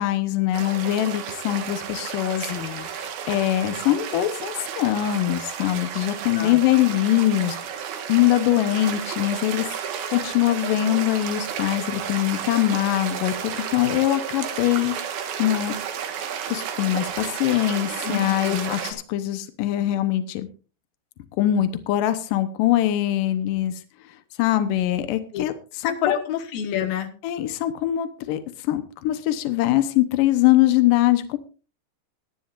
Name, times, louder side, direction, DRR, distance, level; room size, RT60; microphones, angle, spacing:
voice 1, 0.0-2.5 2.9-7.6 8.1-9.7 10.1-15.0 15.4-15.7 16.5-20.5 21.4-23.7 24.4-25.5 25.8-26.1 27.2-31.4, left 13 dB, 80° left, 10 dB, 1.9 m, -22 dB
sound 1, 0.5-18.9, right 8 dB, 65° right, 3.1 m, -32 dB
voice 2, 2.4-2.9 6.4-6.6 18.0-18.7 25.3-25.4 25.8-27.1, left 10 dB, 65° left, 7 dB, 2.8 m, -28 dB
21.0 x 10.5 x 2.5 m, 0.35 s
omnidirectional pair, 5.2 m